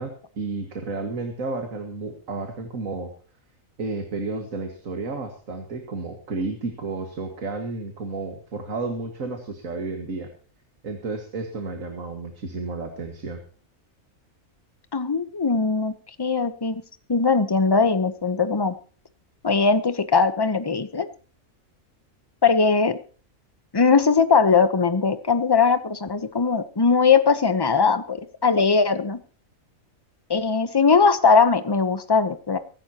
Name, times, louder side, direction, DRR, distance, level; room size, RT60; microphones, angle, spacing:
voice 1, 0.0-3.1 3.8-10.3 10.8-13.4, right 3 dB, 75° right, 4 dB, 2.2 m, -32 dB
voice 2, 14.9-16.8 17.1-18.8 19.4-21.1 22.4-23.0 23.7-29.2 30.3-32.6, left 5 dB, 20° left, 11 dB, 0.8 m, -20 dB
24.0 x 11.5 x 2.9 m, 0.39 s
omnidirectional pair, 1.4 m